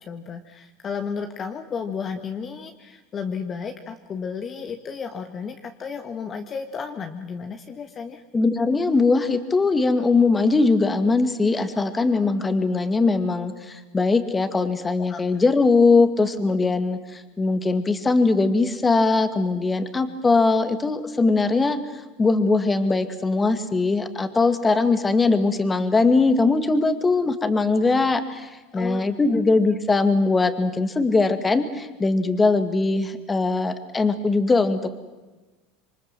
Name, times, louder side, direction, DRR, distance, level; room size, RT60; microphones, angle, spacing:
voice 1, 0.1-8.2 15.1-15.2 28.7-29.4, left 6 dB, 30° left, 6 dB, 1.7 m, -33 dB
voice 2, 8.3-21.8 22.2-34.9, left 3 dB, 15° left, 10 dB, 2.1 m, -21 dB
27.0 x 23.5 x 7.6 m, 1.2 s
supercardioid pair, 120°, 0 cm